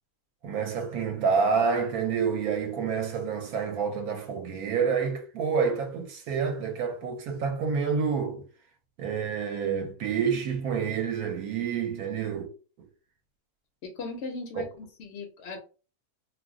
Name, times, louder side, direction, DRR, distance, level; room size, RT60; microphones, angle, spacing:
voice 1, 0.4-8.4 9.0-12.5 14.6-14.7, right 6 dB, 75° right, 1.0 m, -28 dB
voice 2, 13.8-15.6, left 3 dB, 65° left, 0.7 m, -38 dB
2.5 x 2.0 x 3.5 m
omnidirectional pair, 1.6 m